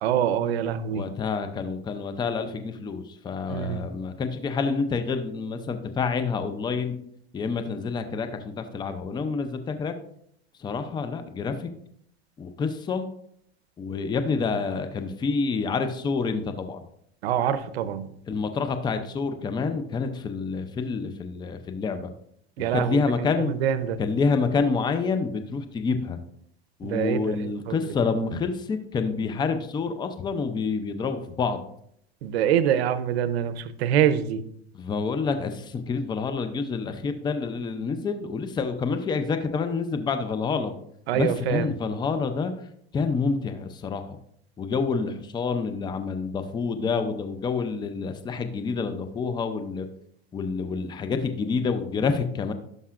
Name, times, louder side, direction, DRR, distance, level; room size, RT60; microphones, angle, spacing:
voice 1, 0.0-1.1 3.5-3.9 17.2-18.1 22.6-24.0 26.8-27.7 32.2-34.4 41.1-41.7, right 9 dB, 90° right, 13 dB, 0.7 m, -25 dB
voice 2, 0.9-6.9 7.3-9.9 10.6-11.7 12.4-13.1 13.8-16.8 18.3-22.1 22.6-23.5 24.0-26.2 26.8-31.6 34.7-40.7 41.1-42.5 42.9-44.2 44.6-49.9 50.3-52.5, left 4 dB, 15° left, 8 dB, 0.5 m, -28 dB
11.5 x 5.4 x 2.5 m, 0.69 s
supercardioid pair, 135°, 31 cm